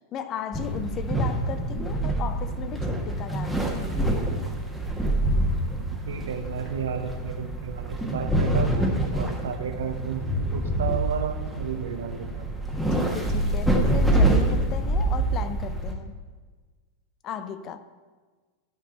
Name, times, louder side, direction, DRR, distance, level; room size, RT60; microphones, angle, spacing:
voice 1, 0.0-4.1 12.9-16.1 17.2-17.8, left 8 dB, 35° left, 0.6 m, -35 dB
sound 1, 0.5-15.9, right 1 dB, ahead, 1.4 m, -26 dB
voice 2, 6.1-12.5, right 7 dB, 65° right, 0.9 m, -32 dB
11.0 x 5.2 x 7.9 m
figure-of-eight pair, 90°, 0 cm